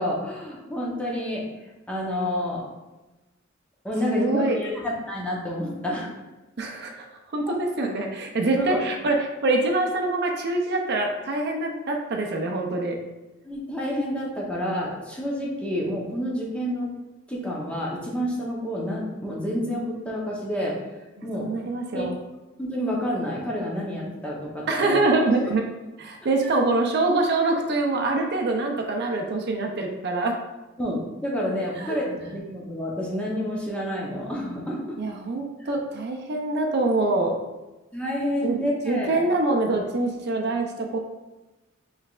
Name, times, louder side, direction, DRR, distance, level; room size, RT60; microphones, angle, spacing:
voice 1, 0.0-1.4 1.9-2.6 3.8-6.1 7.5-7.6 8.5-8.8 13.4-16.9 17.3-20.8 21.2-21.5 21.9-22.1 22.6-24.9 26.4-26.5 30.8-35.0 35.6-35.7 37.9-39.2, equal, 5° left, -4 dB, 0.8 m, -29 dB
voice 2, 4.1-4.6 6.6-6.9 7.3-13.0 21.4-22.2 24.7-25.6 26.0-30.3 31.8-32.0 35.0-37.3 38.4-38.6 38.9-41.0, right 2 dB, 55° right, 2 dB, 0.5 m, -24 dB
5.6 x 3.2 x 2.4 m, 1.1 s
head